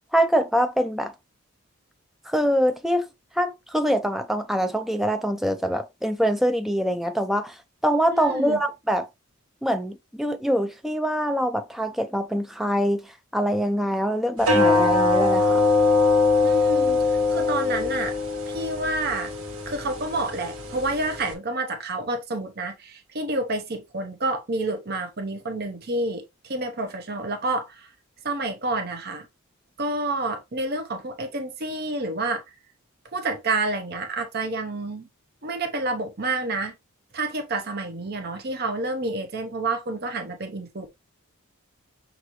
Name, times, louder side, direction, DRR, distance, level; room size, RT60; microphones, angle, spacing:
voice 1, 0.1-1.1 2.3-3.1 3.4-7.6 7.8-9.1 9.6-13.1 13.3-15.6, equal, ahead, 0.4 m, -24 dB
voice 2, 8.1-8.6 16.4-18.1 18.5-19.3 19.7-27.9 28.2-29.3 29.8-32.4 33.1-35.1 35.4-36.7 37.1-40.9, right 2 dB, 45° right, 0.7 m, -29 dB
sound 1, 14.4-21.3, left 3 dB, 70° right, 1.4 m, -22 dB
5.9 x 2.7 x 3.0 m
head